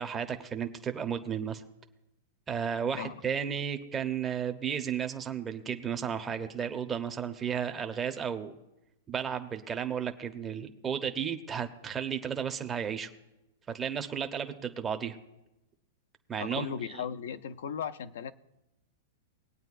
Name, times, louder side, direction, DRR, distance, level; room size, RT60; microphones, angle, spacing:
voice 1, 0.0-1.6 2.5-8.5 9.1-13.1 13.7-15.2 16.3-16.7, right 7 dB, 15° right, 0.7 m, -33 dB
voice 2, 16.4-18.3, left 8 dB, 75° left, 0.6 m, -36 dB
21.0 x 8.9 x 2.5 m
supercardioid pair, 155°, 0 cm